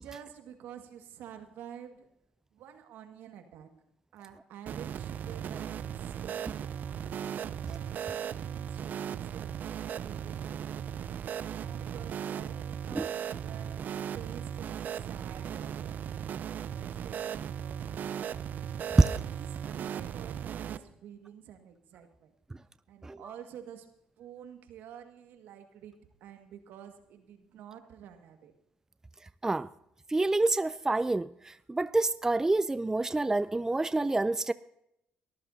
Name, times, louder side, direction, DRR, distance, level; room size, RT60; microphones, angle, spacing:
voice 1, 0.0-2.1 2.5-3.7 4.1-6.4 7.0-7.3 7.6-10.8 11.4-16.0 16.5-18.3 18.6-22.3 22.9-23.9 24.2-25.9 26.2-28.5, right 9 dB, 75° right, 6 dB, 1.8 m, -49 dB
sound 1, 4.7-20.8, right 9 dB, 55° right, 0.6 m, -37 dB
voice 2, 30.1-34.5, right 2 dB, 15° right, 16 dB, 0.4 m, -28 dB
23.0 x 14.0 x 2.7 m, 0.78 s
supercardioid pair, 60°, 3 cm